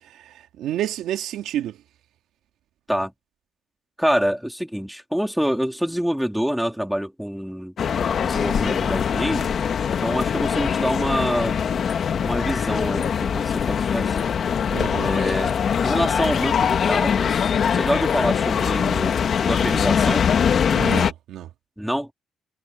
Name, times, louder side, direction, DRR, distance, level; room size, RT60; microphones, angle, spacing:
voice 1, 0.1-1.8 14.7-15.1 20.7-21.5, right 12 dB, 85° right, 2.5 m, -30 dB
voice 2, 4.0-7.7 8.2-9.6 10.0-11.8 12.2-14.3 14.9-19.1 19.4-20.3 21.8-22.1, equal, ahead, 4.0 m, -26 dB
sound 1, 7.8-21.1, left 7 dB, 55° left, 1.7 m, -22 dB
sound 2, 12.8-13.3 14.0-14.4 15.1-15.4 16.2-16.8 17.4-17.8, left 10 dB, 75° left, 3.0 m, -38 dB
cardioid pair, 90°, 0 cm